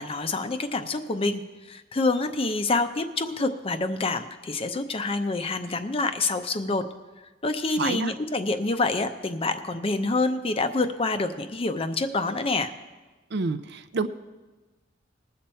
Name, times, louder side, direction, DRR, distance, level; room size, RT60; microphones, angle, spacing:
voice 1, 0.0-1.4 1.7-6.8 7.4-12.7, left 3 dB, 30° left, 9 dB, 0.6 m, -27 dB
voice 2, 7.8-8.1 13.3-14.1, right 4 dB, 65° right, 13 dB, 0.6 m, -28 dB
20.0 x 7.0 x 4.3 m, 1.2 s
head